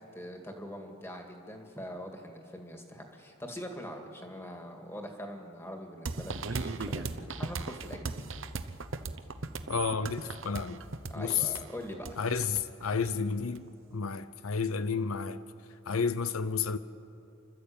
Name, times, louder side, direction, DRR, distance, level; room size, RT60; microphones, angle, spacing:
voice 1, 0.1-8.2 11.1-12.2, equal, 10° left, 2.1 m, -43 dB
sound 1, 6.1-13.6, right 3 dB, 65° right, 0.9 m, -37 dB
voice 2, 9.7-10.8 11.2-11.5 12.2-15.4 15.9-16.8, left 5 dB, 85° left, 0.7 m, -31 dB
29.5 x 12.5 x 8.7 m
head